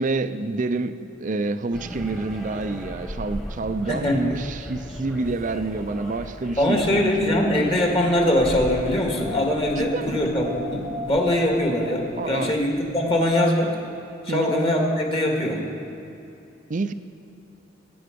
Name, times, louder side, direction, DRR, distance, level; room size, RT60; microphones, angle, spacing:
voice 1, 0.0-7.8 9.8-10.3 12.2-12.6 14.3-14.5 16.7-16.9, right 3 dB, 40° right, 11 dB, 0.5 m, -28 dB
sound 1, 1.7-13.3, equal, ahead, 1.3 m, -39 dB
voice 2, 3.9-4.2 6.6-13.8 14.3-15.6, left 1 dB, 30° left, 0 dB, 2.0 m, -22 dB
Wind, 4.7-12.3, left 1 dB, 75° left, 3.9 m, -38 dB
20.0 x 8.7 x 5.3 m, 2.7 s
head